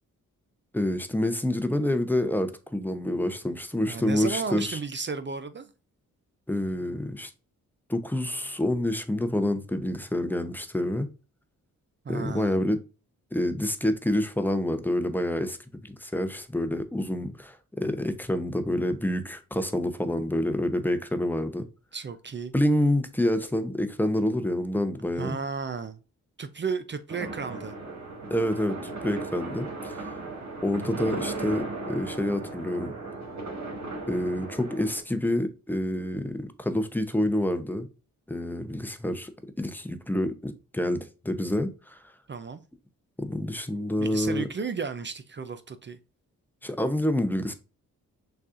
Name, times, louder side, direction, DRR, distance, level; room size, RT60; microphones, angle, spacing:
voice 1, 0.7-4.8 6.5-7.3 7.9-11.1 12.1-12.8 13.3-15.6 15.8-21.7 22.5-25.4 28.3-30.1 30.6-32.9 34.1-37.9 38.3-39.3 39.6-42.0 43.2-44.5 46.6-47.5, left 1 dB, 5° left, 0.7 m, -27 dB
voice 2, 3.9-5.7 12.0-12.6 21.9-22.5 25.2-26.0 26.4-27.7 42.3-42.6 44.0-46.0, right 5 dB, 30° right, 0.5 m, -33 dB
sound 1, 27.1-35.0, right 3 dB, 50° right, 1.5 m, -36 dB
6.5 x 2.4 x 2.5 m
supercardioid pair, 40°, 37 cm